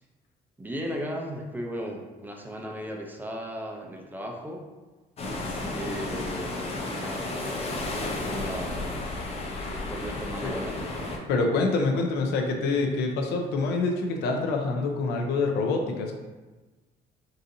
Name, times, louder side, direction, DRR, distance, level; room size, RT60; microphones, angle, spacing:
voice 1, 0.6-4.6 5.4-8.9 9.7-10.7 11.9-12.0, equal, 10° right, 0 dB, 0.4 m, -36 dB
sound 1, 5.2-11.2, left 2 dB, 35° left, 0.6 m, -32 dB
voice 2, 11.3-16.1, left 3 dB, 80° left, 3 dB, 0.5 m, -26 dB
3.8 x 2.7 x 2.6 m, 1.2 s
cardioid pair, 110°, 17 cm